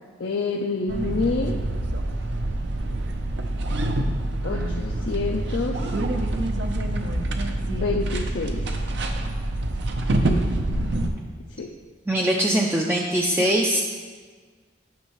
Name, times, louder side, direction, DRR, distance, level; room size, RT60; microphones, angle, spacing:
voice 1, 0.2-1.6 4.4-5.8 7.7-8.7 10.2-10.4 11.5-11.7 13.4-13.5, left 3 dB, 70° left, 0 dB, 0.5 m, -28 dB
sound 1, 0.9-11.1, right 1 dB, 70° right, 0.6 m, -26 dB
voice 2, 12.1-13.8, right 1 dB, 10° right, -1 dB, 0.4 m, -22 dB
9.4 x 6.4 x 3.0 m, 1.5 s
head